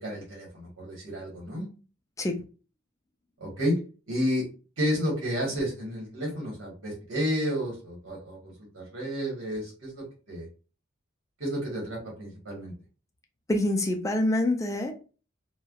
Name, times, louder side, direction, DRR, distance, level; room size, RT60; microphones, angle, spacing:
voice 1, 0.0-1.7 3.4-3.7 4.1-4.4 4.8-10.5 11.4-12.7, equal, 70° right, -3 dB, 1.2 m, -31 dB
voice 2, 13.5-15.1, left 1 dB, 15° left, 3 dB, 0.3 m, -26 dB
3.2 x 2.1 x 2.3 m, 0.35 s
head